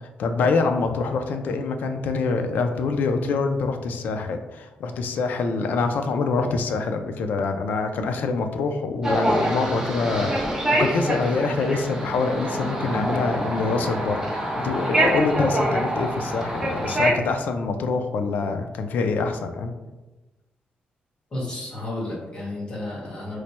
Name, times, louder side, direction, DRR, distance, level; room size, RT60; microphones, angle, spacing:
voice 1, 0.2-19.7, left 4 dB, 70° left, 6 dB, 0.3 m, -25 dB
sound 1, 9.0-17.1, right 1 dB, 15° right, 0.6 m, -25 dB
voice 2, 21.3-23.4, left 2 dB, 30° left, -5 dB, 1.2 m, -32 dB
3.1 x 2.1 x 4.2 m, 1.1 s
wide cardioid pair, 170°, 3 cm